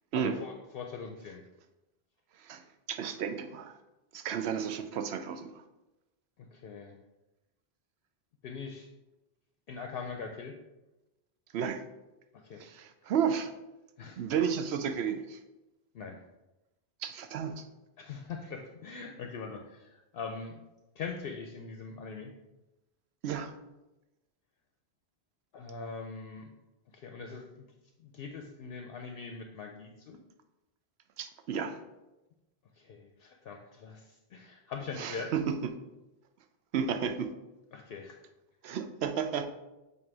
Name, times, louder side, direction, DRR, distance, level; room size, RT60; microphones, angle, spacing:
voice 1, 0.1-1.4 6.5-7.0 8.4-8.9 9.7-10.6 12.3-12.7 14.0-14.2 15.9-16.2 18.0-20.5 21.0-22.3 25.5-26.5 26.9-27.7 28.0-30.2 32.8-35.3 37.7-38.2, left 5 dB, 65° left, 3 dB, 0.7 m, -42 dB
voice 2, 2.9-3.8 4.1-5.5 11.5-11.8 12.6-13.5 14.2-15.4 17.0-17.6 23.2-23.5 31.2-31.8 35.0-35.5 36.7-37.3 38.6-39.5, right 7 dB, 75° right, 8 dB, 0.8 m, -32 dB
7.4 x 2.7 x 4.7 m, 1.0 s
omnidirectional pair, 1.1 m